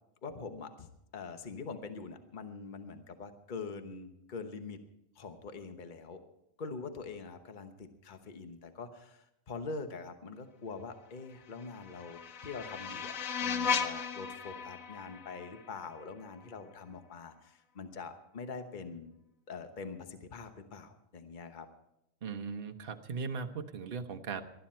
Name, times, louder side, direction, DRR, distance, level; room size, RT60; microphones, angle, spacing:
voice 1, 0.2-4.8 5.1-6.2 6.6-19.1 19.5-21.7, left 4 dB, 40° left, 7 dB, 1.2 m, -44 dB
sound 1, 11.4-16.4, left 6 dB, 85° left, 1.3 m, -37 dB
voice 2, 22.2-24.4, right 5 dB, 45° right, 6 dB, 1.1 m, -38 dB
19.0 x 13.0 x 4.4 m, 0.81 s
omnidirectional pair, 1.4 m